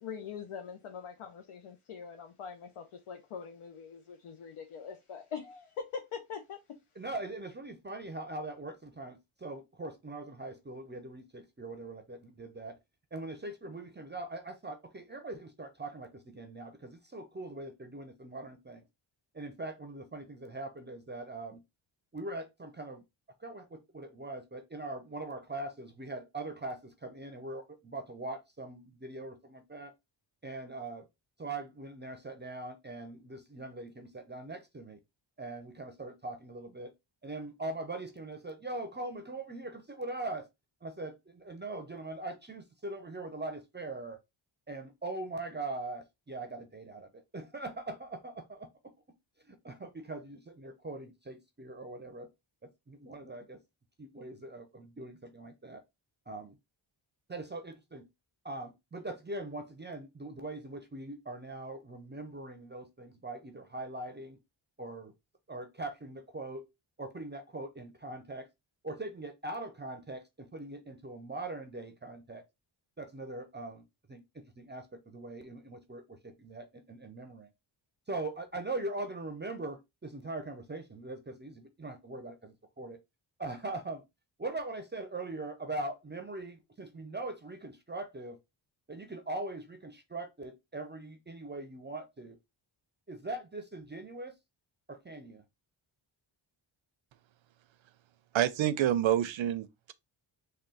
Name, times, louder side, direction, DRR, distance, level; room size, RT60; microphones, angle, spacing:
voice 1, 0.0-6.8, left 6 dB, 90° left, 0.7 m, -43 dB
voice 2, 7.0-12.8 13.1-18.9 19.3-21.6 22.1-23.0 23.4-29.9 30.4-31.1 31.4-35.0 35.4-36.9 37.2-40.5 40.8-44.2 44.7-48.7 49.5-52.3 52.6-53.6 54.0-55.8 56.3-56.5 57.3-58.0 58.4-64.4 64.8-65.1 65.5-66.6 67.0-68.5 68.8-72.4 73.0-73.8 74.1-77.5 78.1-83.0 83.4-84.0 84.4-88.4 88.9-92.4 93.1-94.3 94.9-95.4, right 2 dB, 25° right, 0.5 m, -41 dB
voice 3, 98.3-99.9, right 11 dB, 70° right, 0.6 m, -28 dB
3.7 x 2.3 x 3.9 m
wide cardioid pair, 120°, 49 cm